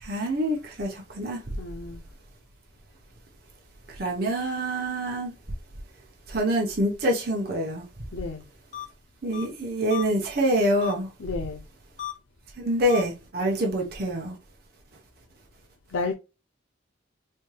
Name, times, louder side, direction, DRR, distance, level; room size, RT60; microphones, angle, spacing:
voice 1, 0.0-1.4 4.0-5.3 6.3-7.8 9.2-11.1 12.6-14.3, right 1 dB, 50° right, 0.9 m, -26 dB
voice 2, 1.6-2.0 8.1-8.5 11.2-11.6 15.9-16.1, left 4 dB, 75° left, 0.5 m, -31 dB
sound 1, 8.7-8.9 9.3-9.5 9.9-10.0 10.8-10.9 12.0-12.1 12.9-13.0, left 12 dB, 35° left, 0.7 m, -34 dB
4.3 x 3.2 x 2.2 m
head